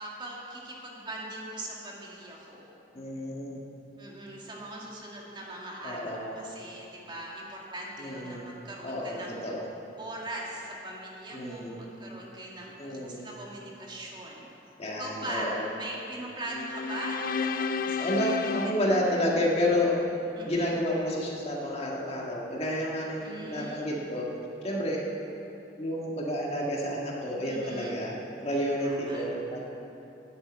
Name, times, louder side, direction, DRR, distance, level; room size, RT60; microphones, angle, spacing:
voice 1, 0.0-2.7 4.0-9.5 10.0-14.5 15.0-17.2 17.6-18.9 20.4-20.8 23.2-24.0 27.5-27.9 28.8-29.2, right 1 dB, 25° right, -3 dB, 2.0 m, -40 dB
voice 2, 2.9-3.6 5.8-6.4 8.0-8.5 8.8-9.7 11.3-11.8 12.8-13.3 14.8-15.7 18.0-20.0 20.4-24.3 24.6-25.1 25.8-29.6, left 1 dB, 35° left, -2 dB, 1.8 m, -30 dB
sound 1, 16.4-19.8, left 5 dB, 50° left, 0.4 m, -33 dB
10.5 x 9.3 x 8.8 m, 2.9 s
head